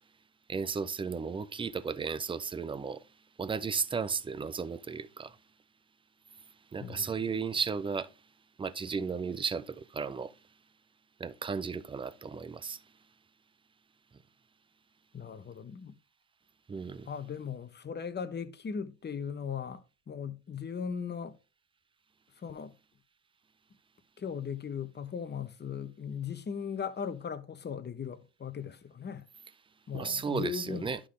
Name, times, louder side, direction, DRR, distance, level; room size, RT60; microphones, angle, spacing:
voice 1, 0.5-3.0 3.4-5.4 6.7-8.1 8.6-10.3 11.2-12.8 16.7-17.1 29.9-31.0, right 5 dB, 10° right, 0.4 m, -34 dB
voice 2, 6.8-7.2 15.1-15.9 17.0-21.4 22.4-22.7 24.2-29.2 29.9-30.9, left 7 dB, 20° left, 0.9 m, -38 dB
11.0 x 3.8 x 3.7 m
hypercardioid pair, 75°, 48 cm